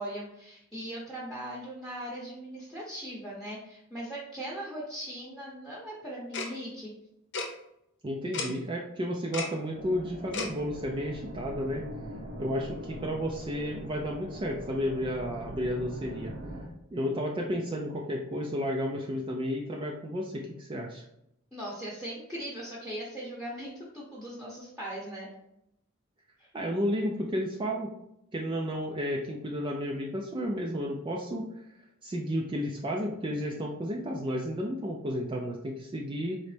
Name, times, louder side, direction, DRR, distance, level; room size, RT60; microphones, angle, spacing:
voice 1, 0.0-6.9 21.5-25.3 26.4-26.5, right 1 dB, ahead, -5 dB, 0.8 m, -39 dB
Tick-tock, 6.3-6.5 7.3-7.5 8.3-8.5 9.3-9.5 10.3-10.5, left 4 dB, 55° left, 0.8 m, -32 dB
voice 2, 8.0-11.8 12.4-16.3 16.9-21.0 26.5-27.9 28.3-31.5 32.0-36.4, equal, 25° right, -1 dB, 0.4 m, -32 dB
sound 1, 9.7-16.7, right 1 dB, 55° right, 0.7 m, -42 dB
3.9 x 3.1 x 3.3 m, 0.81 s
head